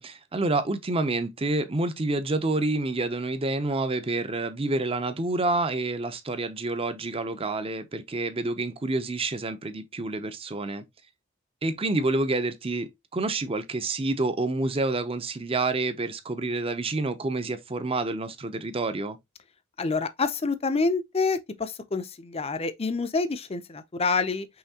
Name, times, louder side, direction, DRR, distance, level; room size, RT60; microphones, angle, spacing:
voice 1, 0.0-10.8 11.6-19.2, right 2 dB, 30° right, 0.6 m, -28 dB
voice 2, 19.8-24.5, left 4 dB, 30° left, 0.5 m, -27 dB
5.7 x 3.2 x 2.8 m
head